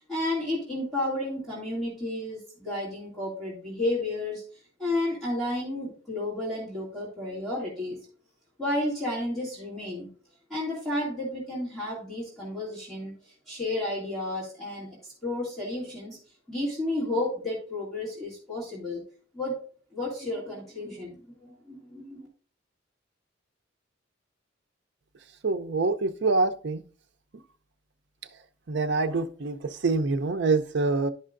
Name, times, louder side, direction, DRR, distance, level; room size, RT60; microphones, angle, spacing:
voice 1, 0.0-4.4 4.8-8.0 8.6-10.1 10.5-16.2 16.5-19.0 19.3-19.6 19.9-22.3, left 1 dB, ahead, 2.2 m, -32 dB
voice 2, 25.4-26.8 28.7-31.1, right 3 dB, 60° right, 0.5 m, -25 dB
11.0 x 5.5 x 2.5 m
head